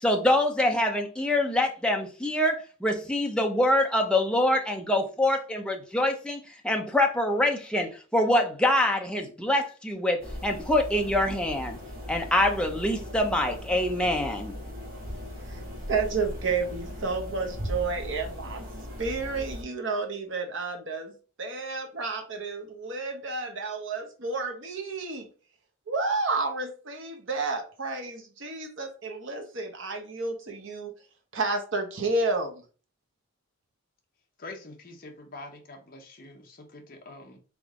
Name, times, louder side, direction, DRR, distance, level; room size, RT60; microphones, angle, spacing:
voice 1, 0.0-11.8 12.1-14.5, left 1 dB, 5° left, 0.6 m, -25 dB
sound 1, 10.2-19.6, equal, 40° right, 1.6 m, -38 dB
voice 2, 15.9-18.7 19.0-21.1 21.4-25.3 25.9-30.9 31.3-32.6, right 3 dB, 60° right, 0.9 m, -31 dB
voice 3, 34.4-37.4, left 2 dB, 40° left, 0.9 m, -45 dB
3.8 x 3.6 x 3.6 m
head